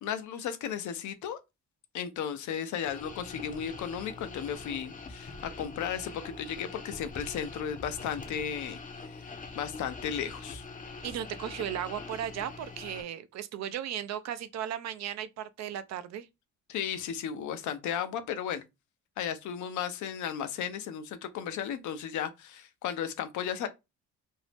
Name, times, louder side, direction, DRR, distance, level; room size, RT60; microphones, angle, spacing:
voice 1, 0.0-1.4 1.9-8.8 9.0-9.3 9.5-10.6 16.7-18.6 19.2-23.7, left 8 dB, 75° left, 0.6 m, -35 dB
sound 1, 2.9-13.0, left 3 dB, 25° left, 0.6 m, -44 dB
voice 2, 11.0-16.3, right 10 dB, 60° right, 0.4 m, -36 dB
2.6 x 2.0 x 3.2 m
cardioid pair, 90°, 30 cm